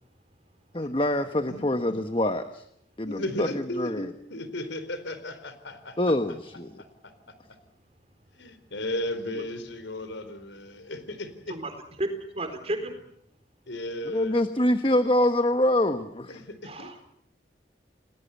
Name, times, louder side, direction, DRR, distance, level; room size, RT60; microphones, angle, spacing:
voice 1, 0.7-2.6 3.0-4.1 6.0-6.7 14.1-16.4, left 1 dB, 30° left, 9 dB, 1.2 m, -25 dB
voice 2, 3.1-6.1 8.3-11.6 13.7-14.4 16.3-16.9, left 1 dB, 85° left, 11 dB, 4.2 m, -35 dB
voice 3, 11.5-13.0 16.6-17.1, right 1 dB, 35° right, 7 dB, 4.2 m, -33 dB
30.0 x 19.5 x 8.3 m, 0.72 s
head